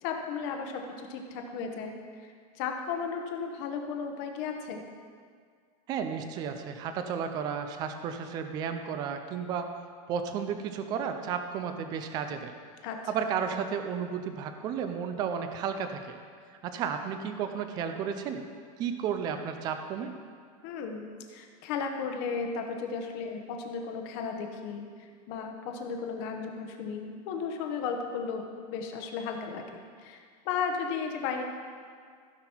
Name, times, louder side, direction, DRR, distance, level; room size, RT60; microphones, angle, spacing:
voice 1, 0.0-4.8 12.8-13.0 20.6-24.8 25.3-28.4 28.7-30.2 30.4-31.4, left 5 dB, 40° left, 4 dB, 1.0 m, -35 dB
voice 2, 5.9-9.7 10.1-12.5 13.1-16.2 16.6-18.4 18.8-20.1, right 7 dB, 20° right, 7 dB, 0.4 m, -33 dB
15.5 x 5.9 x 4.4 m, 2.1 s
supercardioid pair, 180°, 20 cm